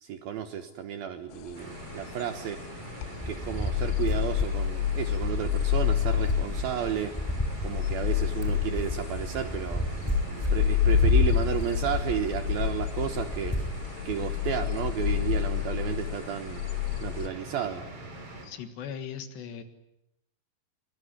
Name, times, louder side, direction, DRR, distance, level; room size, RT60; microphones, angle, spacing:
voice 1, 0.0-2.6 3.3-7.1 7.6-13.6 14.1-16.6 17.0-17.8, right 9 dB, 70° right, 9 dB, 2.5 m, -32 dB
sound 1, 1.4-17.3, left 10 dB, 85° left, 3.6 m, -28 dB
sound 2, 1.5-18.5, right 2 dB, 30° right, 5.1 m, -43 dB
sound 3, 3.2-13.9, equal, 5° left, 2.4 m, -33 dB
voice 2, 18.4-19.6, left 7 dB, 70° left, 9 dB, 3.6 m, -38 dB
23.5 x 22.0 x 9.7 m, 0.84 s
omnidirectional pair, 5.4 m